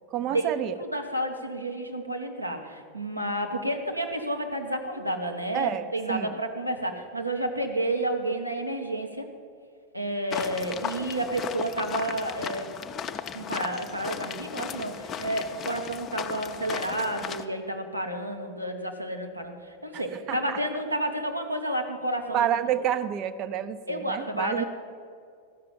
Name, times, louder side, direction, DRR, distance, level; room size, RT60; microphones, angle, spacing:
voice 1, 0.1-0.7 5.5-6.4 19.9-20.0 20.3-20.6 22.3-24.6, right 10 dB, 35° right, 12 dB, 0.7 m, -29 dB
voice 2, 0.8-9.3 9.9-12.7 13.3-22.5 23.9-24.6, right 1 dB, 85° right, 3 dB, 1.3 m, -30 dB
sound 1, 10.3-17.5, left 7 dB, 25° left, 0.6 m, -36 dB
14.0 x 6.8 x 9.1 m, 2.2 s
figure-of-eight pair, 90°, 0 cm